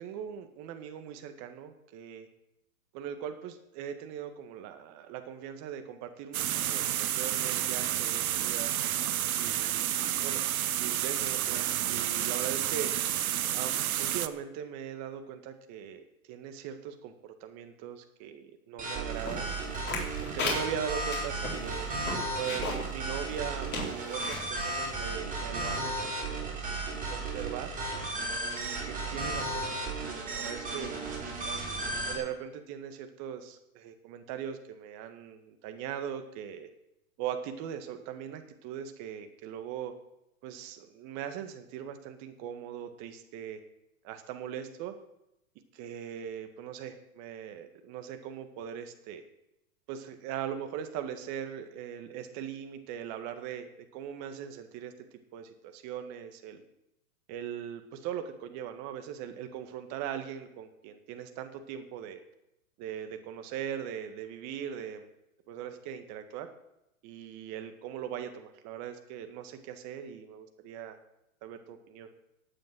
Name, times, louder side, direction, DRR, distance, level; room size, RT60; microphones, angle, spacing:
voice 1, 0.0-2.3 2.9-8.7 9.4-9.9 10.2-12.9 13.5-19.6 20.3-21.9 22.4-26.6 27.0-27.7 28.4-30.9 31.4-31.8 32.1-36.7 37.2-39.9 40.4-43.6 44.0-44.9 45.7-49.2 49.9-54.9 55.3-56.6 57.3-62.2 62.8-65.1 65.5-66.5 67.0-71.0 71.4-72.1, right 9 dB, 40° right, 8 dB, 1.8 m, -40 dB
sound 1, 6.3-14.3, right 11 dB, 75° right, 0.9 m, -30 dB
sound 2, 18.8-32.2, right 2 dB, 20° right, 3.7 m, -34 dB
sound 3, 19.2-22.9 23.3-23.4 23.7-24.4 25.0-25.1, left 3 dB, 25° left, 4.1 m, -35 dB
15.0 x 9.0 x 6.2 m, 0.86 s
hypercardioid pair, 120°, 43 cm